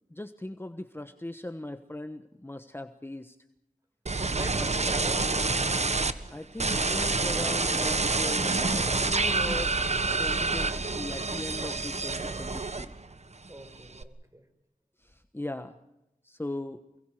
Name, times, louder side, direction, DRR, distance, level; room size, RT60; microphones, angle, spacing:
voice 1, 0.1-3.4 4.6-4.7 6.3-9.8 10.2-12.9 15.0-15.8 16.2-16.8, left 1 dB, 15° left, 8 dB, 1.2 m, -39 dB
sound 1, 4.1-6.1 6.6-13.1 13.5-14.0, right 3 dB, 55° right, 1.4 m, -27 dB
voice 2, 4.3-5.8 13.5-14.4, right 1 dB, 20° right, 6 dB, 5.3 m, -43 dB
29.0 x 23.0 x 5.0 m, 0.89 s
wide cardioid pair, 60°, 14 cm